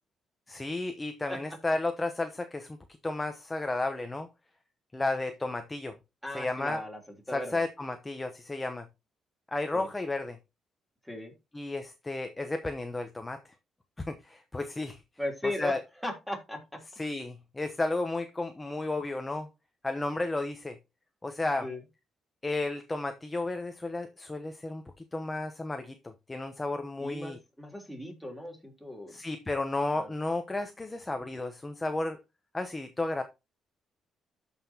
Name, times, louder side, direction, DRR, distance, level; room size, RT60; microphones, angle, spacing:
voice 1, 0.5-2.8 3.0-4.3 4.9-6.0 6.3-6.8 7.3-8.9 9.5-10.4 11.5-13.5 14.0-15.0 15.6-15.8 17.0-19.5 19.8-20.8 21.2-21.7 22.4-24.8 25.1-27.4 29.1-32.2 32.5-33.2, left 2 dB, 20° left, 0.9 m, -33 dB
voice 2, 6.2-7.0 7.3-7.6 9.7-9.9 11.0-11.3 15.2-15.7 16.0-16.8 21.6-21.8 27.0-29.1 29.9-30.1, left 1 dB, ahead, 3.4 m, -37 dB
13.0 x 5.7 x 2.9 m
cardioid pair, 90°, 0 cm